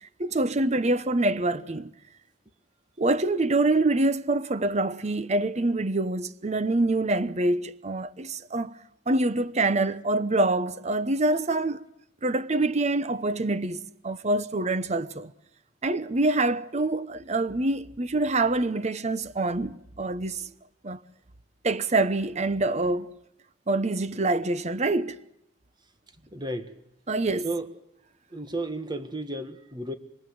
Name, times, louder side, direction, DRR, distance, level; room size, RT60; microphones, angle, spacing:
voice 1, 0.2-1.9 3.0-8.8 9.1-11.8 12.2-15.3 15.8-20.5 20.8-21.0 21.6-23.1 23.7-25.2 27.1-27.5, right 2 dB, 40° right, 1.0 m, -25 dB
voice 2, 26.3-26.7 27.4-27.7 28.3-29.9, right 2 dB, 25° right, 1.6 m, -33 dB
25.5 x 22.5 x 7.9 m
head